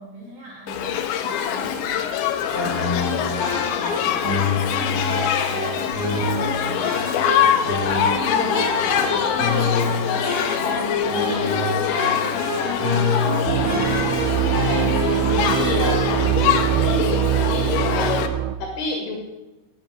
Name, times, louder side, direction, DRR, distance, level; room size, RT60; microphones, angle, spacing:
voice 1, 0.0-2.1 2.5-4.5 5.0-7.3, right 1 dB, 55° right, -5 dB, 4.0 m, -42 dB
Shout / Human group actions, 0.7-18.3, left 9 dB, 80° left, 3.4 m, -24 dB
sound 1, 2.5-16.2, left 2 dB, 15° left, 3.2 m, -27 dB
voice 2, 7.8-12.3 12.6-14.2 14.7-19.2, left 4 dB, 65° left, 1 dB, 4.1 m, -29 dB
sound 2, 13.5-18.6, right 14 dB, 85° right, 2.7 m, -22 dB
10.5 x 9.3 x 9.5 m, 1.0 s
omnidirectional pair, 5.1 m